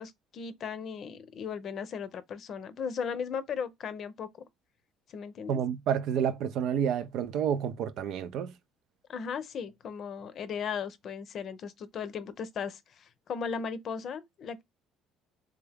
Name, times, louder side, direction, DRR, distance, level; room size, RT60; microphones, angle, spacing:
voice 1, 0.0-4.3 5.1-5.6 9.1-14.6, left 6 dB, 50° left, 0.6 m, -37 dB
voice 2, 5.5-8.5, right 8 dB, 70° right, 0.5 m, -29 dB
3.6 x 2.3 x 3.5 m
supercardioid pair, 90°, 0 cm